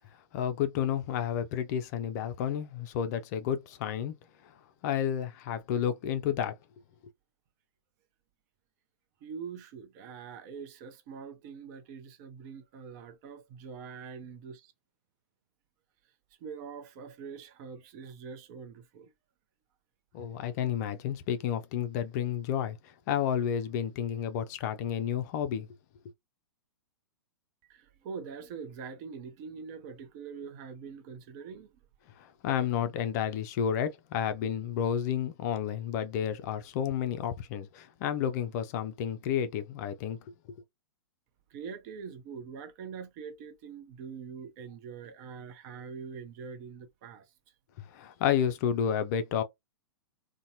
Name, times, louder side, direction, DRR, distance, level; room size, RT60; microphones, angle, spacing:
voice 1, 0.3-4.1 4.4-4.5 4.8-6.6 20.1-25.7 32.2-40.2 47.8-49.4, left 9 dB, 40° left, 0.4 m, -31 dB
voice 2, 9.2-14.7 16.4-19.1 27.7-31.7 41.5-47.2, right 6 dB, 40° right, 0.6 m, -44 dB
2.6 x 2.2 x 2.7 m
figure-of-eight pair, 110°, 14 cm